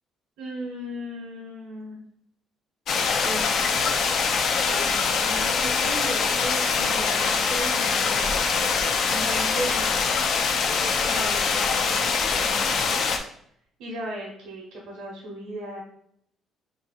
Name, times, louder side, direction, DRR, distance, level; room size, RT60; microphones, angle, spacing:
voice 1, 0.4-2.0 3.2-3.8 4.7-8.4 8.7-10.3 11.0-12.8 13.8-15.8, right 1 dB, 85° right, -4 dB, 0.9 m, -36 dB
sound 1, 2.9-13.2, left 5 dB, 60° left, 0.5 m, -24 dB
3.3 x 2.7 x 4.3 m, 0.69 s
cardioid pair, 105°, 0 cm